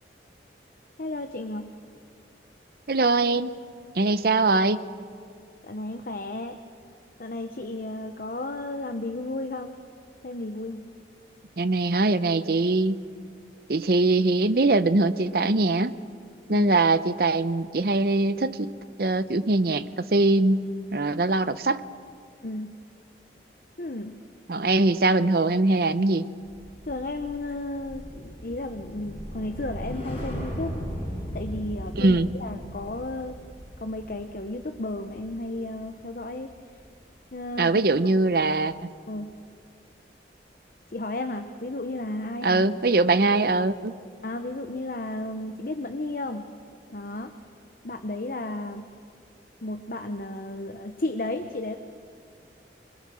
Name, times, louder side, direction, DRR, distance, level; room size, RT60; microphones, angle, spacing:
voice 1, 1.0-1.7 5.6-6.6 7.2-9.8 10.2-10.9 16.5-16.7 22.4-22.7 23.8-24.2 26.9-30.8 31.3-33.4 33.8-36.5 37.3-37.7 39.1-39.3 40.9-42.7 44.2-46.5 46.9-47.3 47.8-48.9 49.6-51.8, left 2 dB, 50° left, 7 dB, 0.8 m, -33 dB
voice 2, 2.9-3.5 4.0-4.8 11.6-13.0 13.7-15.9 16.5-18.7 19.0-19.8 20.1-20.6 20.9-21.8 24.5-26.2 31.9-32.3 37.6-38.7 42.4-43.9, right 2 dB, 55° right, 13 dB, 0.7 m, -22 dB
sound 1, 26.4-36.8 37.2-37.5, equal, 35° left, 5.6 m, -38 dB
26.5 x 21.5 x 6.3 m, 2.2 s
head